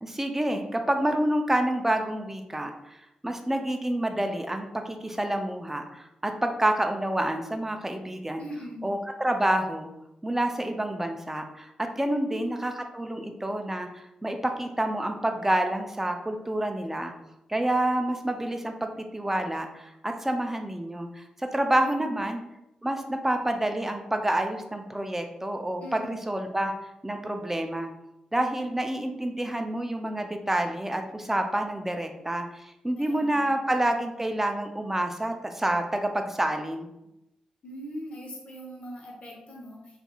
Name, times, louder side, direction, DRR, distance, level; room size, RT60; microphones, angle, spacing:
voice 1, 0.0-8.4 8.8-9.9 10.2-17.1 17.5-22.4 22.8-26.7 27.0-27.9 28.3-36.9, right 1 dB, 15° right, 5 dB, 0.4 m, -28 dB
voice 2, 8.4-8.8 12.1-12.7 21.8-22.4 25.8-26.2 32.9-33.7 37.6-40.0, equal, 55° left, -2 dB, 0.8 m, -41 dB
2.7 x 2.4 x 2.3 m, 0.90 s
cardioid pair, 60°, 2 cm